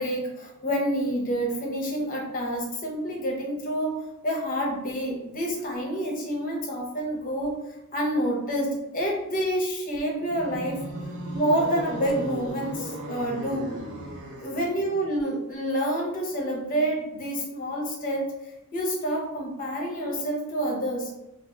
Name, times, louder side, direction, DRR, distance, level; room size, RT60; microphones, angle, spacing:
voice 1, 0.0-4.0 4.2-7.5 7.9-10.8 11.3-13.7 14.4-18.3 18.7-21.1, equal, 40° left, -1 dB, 0.7 m, -28 dB
sound 1, 10.2-14.9, right 2 dB, 85° right, 0.5 m, -36 dB
2.7 x 2.4 x 2.3 m, 0.92 s
head